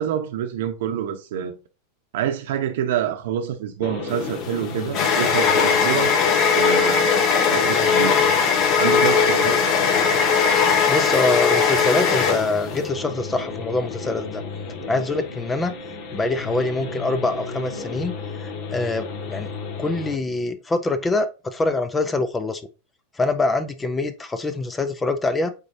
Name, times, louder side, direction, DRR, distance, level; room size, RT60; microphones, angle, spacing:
voice 1, 0.0-1.5 2.1-6.2 6.5-7.2 7.5-8.2 8.8-9.6, right 9 dB, 75° right, 0.9 m, -26 dB
sound 1, 3.8-20.2, left 4 dB, 60° left, 1.9 m, -33 dB
sound 2, 4.1-12.8, left 6 dB, 35° left, 1.6 m, -19 dB
voice 2, 10.9-14.4 14.9-15.7 16.1-18.1 18.4-19.5 19.8-22.6 23.2-25.5, left 2 dB, 10° left, 0.6 m, -24 dB
8.3 x 4.1 x 2.7 m
supercardioid pair, 155°, 0 cm